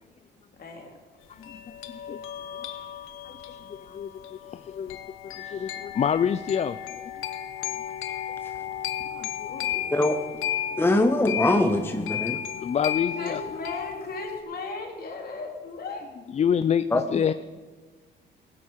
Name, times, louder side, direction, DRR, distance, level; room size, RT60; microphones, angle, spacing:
voice 1, 0.6-0.9 9.5-10.3 13.2-16.1, left 3 dB, 50° left, 2 dB, 2.7 m, -37 dB
sound 1, 1.4-14.4, left 10 dB, 85° left, 0.9 m, -34 dB
voice 2, 1.4-2.2 3.2-5.0 5.2-7.0 9.1-9.5 12.6-13.4 16.3-17.3, left 8 dB, 35° left, 13 dB, 0.4 m, -28 dB
voice 3, 10.8-12.4 16.9-17.0, left 1 dB, 10° left, 7 dB, 0.8 m, -22 dB
16.5 x 9.8 x 4.7 m, 1.4 s
cardioid pair, 90°, 20 cm